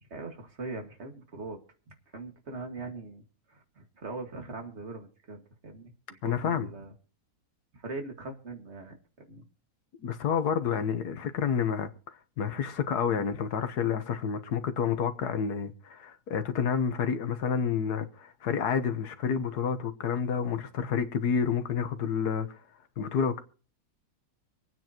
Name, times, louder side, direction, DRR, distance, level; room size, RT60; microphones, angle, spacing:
voice 1, 0.0-1.6 1.9-3.2 3.5-6.9 7.7-9.5, right 3 dB, 45° right, 2.3 m, -41 dB
voice 2, 6.2-6.7 10.0-11.9 12.4-22.6 23.0-23.4, left 7 dB, 80° left, 1.7 m, -29 dB
25.5 x 9.3 x 3.0 m
omnidirectional pair, 1.7 m